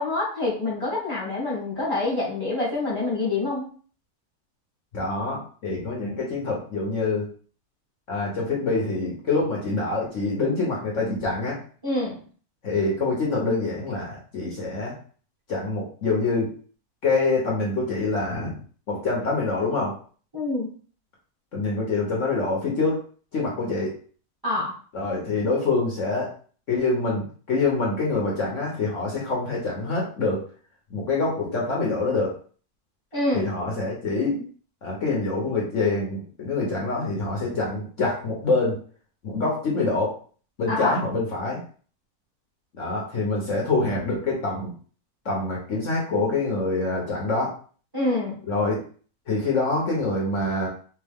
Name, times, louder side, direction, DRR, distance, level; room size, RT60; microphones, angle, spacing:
voice 1, 0.0-3.7 11.8-12.2 20.3-20.7 24.4-24.7 33.1-33.5 40.7-40.9 47.9-48.4, left 2 dB, 15° right, -6 dB, 1.7 m, -26 dB
voice 2, 4.9-7.3 8.1-11.6 12.6-14.9 15.5-16.5 17.0-18.5 18.9-19.9 21.5-23.0 23.3-23.9 24.9-26.3 26.7-30.4 30.9-32.3 33.3-34.4 34.8-38.8 39.2-40.2 40.6-41.6 42.8-44.7 45.2-47.5 48.5-48.8 49.3-50.7, left 3 dB, 55° left, -2 dB, 1.2 m, -25 dB
4.6 x 2.8 x 3.5 m, 0.43 s
omnidirectional pair, 1.6 m